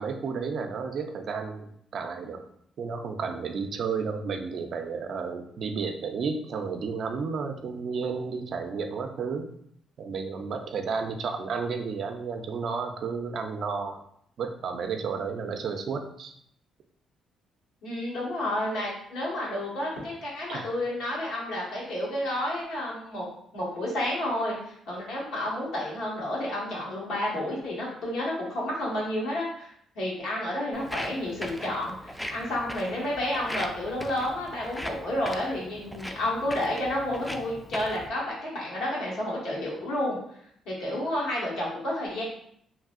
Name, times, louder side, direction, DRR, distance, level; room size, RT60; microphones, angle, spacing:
voice 1, 0.0-2.4 2.8-9.5 10.0-14.0 14.4-16.3 20.5-20.6, right 5 dB, 60° right, 5 dB, 0.4 m, -32 dB
voice 2, 17.8-23.3 23.5-29.7 29.9-40.2 40.6-42.2, left 1 dB, 85° left, -5 dB, 1.3 m, -30 dB
Walk footsteps, 30.7-38.1, equal, 5° left, 0.3 m, -39 dB
3.1 x 2.6 x 2.4 m, 0.68 s
cardioid pair, 90°, 0 cm